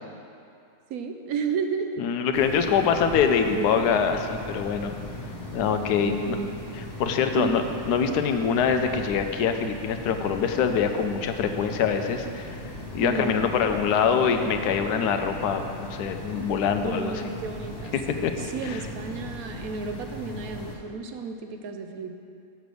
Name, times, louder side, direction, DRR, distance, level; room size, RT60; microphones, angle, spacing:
voice 1, 0.9-2.0 3.5-3.9 6.0-6.5 7.3-7.6 13.0-13.5 16.8-22.2, right 4 dB, 70° right, 5 dB, 1.0 m, -32 dB
voice 2, 2.0-4.9 5.5-6.4 6.8-12.6 12.9-17.2 17.9-18.8, left 6 dB, 85° left, 7 dB, 1.2 m, -24 dB
sound 1, 2.3-20.7, left 1 dB, 40° left, 1.4 m, -38 dB
7.0 x 6.3 x 6.8 m, 2.5 s
omnidirectional pair, 1.7 m